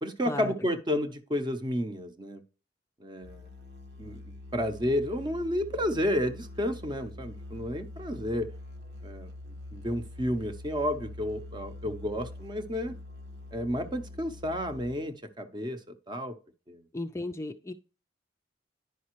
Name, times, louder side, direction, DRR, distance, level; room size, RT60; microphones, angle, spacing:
voice 1, 0.0-2.4 3.0-3.5 4.0-8.5 9.0-13.0 13.5-16.4 16.7-16.8, equal, 25° right, 0.7 m, -31 dB
Musical instrument, 3.2-15.2, left 2 dB, 70° right, 1.1 m, -45 dB
voice 2, 16.9-17.7, left 2 dB, 15° left, 0.4 m, -35 dB
10.5 x 5.2 x 3.0 m
head